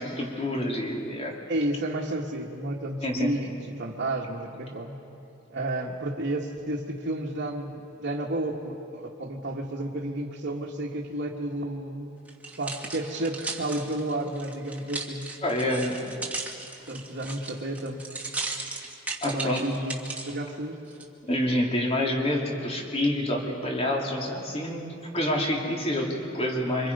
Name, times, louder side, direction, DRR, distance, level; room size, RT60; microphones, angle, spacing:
voice 1, 0.0-1.4 3.0-3.3 15.4-16.0 19.2-19.6 21.3-24.9 25.1-26.9, left 1 dB, 30° left, -1 dB, 3.0 m, -27 dB
voice 2, 1.5-5.0 5.5-12.1 12.6-15.4 16.3-16.4 16.9-18.0 19.2-20.8, right 1 dB, 55° right, -4 dB, 1.7 m, -32 dB
sound 1, 12.3-20.3 20.9-21.0, right 3 dB, 5° right, 1.9 m, -36 dB
27.0 x 25.5 x 5.5 m, 2.6 s
head